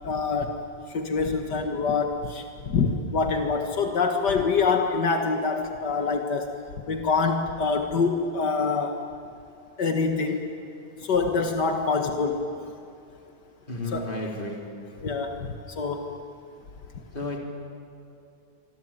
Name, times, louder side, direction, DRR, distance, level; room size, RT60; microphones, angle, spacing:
voice 1, 0.0-0.6 0.9-6.5 6.9-9.0 9.8-10.5 11.0-12.4 13.9-14.1 15.0-15.4 15.8-16.1, left 4 dB, 80° left, 4 dB, 2.3 m, -25 dB
voice 2, 13.7-14.6 17.1-17.4, left 1 dB, 30° left, 0 dB, 4.3 m, -32 dB
25.5 x 24.5 x 9.1 m, 2.6 s
omnidirectional pair, 1.8 m